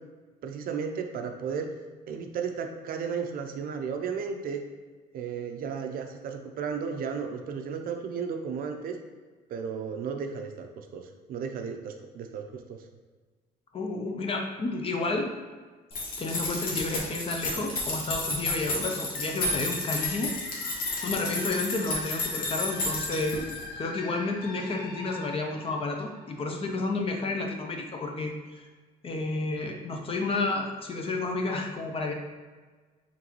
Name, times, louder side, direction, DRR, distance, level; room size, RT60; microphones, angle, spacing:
voice 1, 0.4-1.7 2.1-4.6 5.1-9.0 9.5-12.8, right 6 dB, 60° right, 5 dB, 0.5 m, -34 dB
voice 2, 13.7-15.3 16.2-20.8 21.0-23.3 23.8-28.7 29.0-32.1, left 3 dB, 35° left, 3 dB, 0.6 m, -31 dB
sound 1, 15.9-23.7, left 2 dB, 60° left, 1.0 m, -32 dB
sound 2, 19.1-26.7, left 4 dB, 80° left, 0.6 m, -43 dB
3.9 x 3.7 x 3.0 m, 1.4 s
cardioid pair, 110°, 17 cm